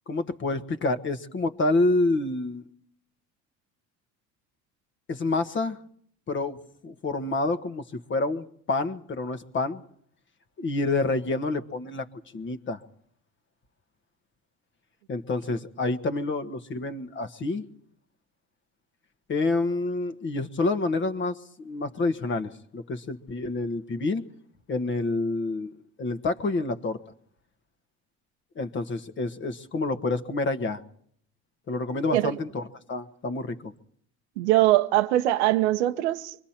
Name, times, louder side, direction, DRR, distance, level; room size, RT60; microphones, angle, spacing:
voice 1, 0.1-2.6 5.1-5.8 6.3-6.6 6.8-9.8 10.6-12.0 12.3-12.8 15.1-17.6 19.3-24.2 24.7-25.7 26.0-27.0 28.5-30.8 31.7-33.7, left 2 dB, 35° left, 1.4 m, -28 dB
voice 2, 34.4-36.4, right 15 dB, 90° right, 1.0 m, -22 dB
25.5 x 24.0 x 4.4 m
supercardioid pair, 95°, 33 cm